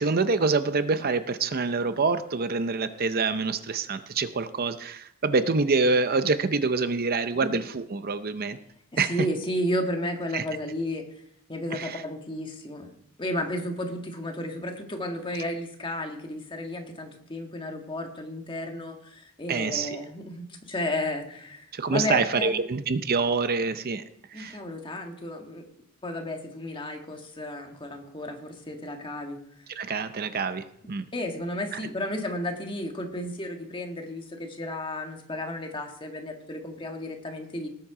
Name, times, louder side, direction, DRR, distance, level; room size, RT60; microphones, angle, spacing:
voice 1, 0.0-8.6 9.0-9.1 10.3-10.4 11.7-12.0 19.5-20.0 21.7-24.0 24.3-24.6 29.7-31.1 31.7-31.8, right 4 dB, 45° right, 11 dB, 0.6 m, -26 dB
voice 2, 8.9-11.1 11.5-12.9 13.2-22.6 24.3-25.6 26.0-29.4 31.1-37.7, left 1 dB, 25° left, 3 dB, 1.6 m, -33 dB
19.0 x 7.5 x 4.9 m, 0.73 s
head